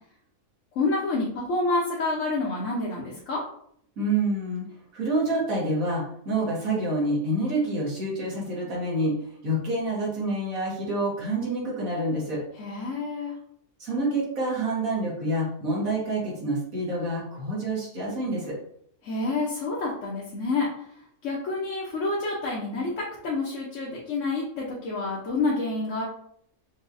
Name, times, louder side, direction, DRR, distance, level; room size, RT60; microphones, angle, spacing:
voice 1, 0.7-3.4 12.6-13.4 19.0-20.9 21.2-26.0, left 3 dB, 65° left, -5 dB, 1.2 m, -28 dB
voice 2, 4.0-4.6 4.9-9.2 9.4-12.4 13.8-18.6, right 1 dB, 80° right, -5 dB, 2.0 m, -27 dB
5.5 x 2.8 x 2.6 m, 0.67 s
omnidirectional pair, 1.4 m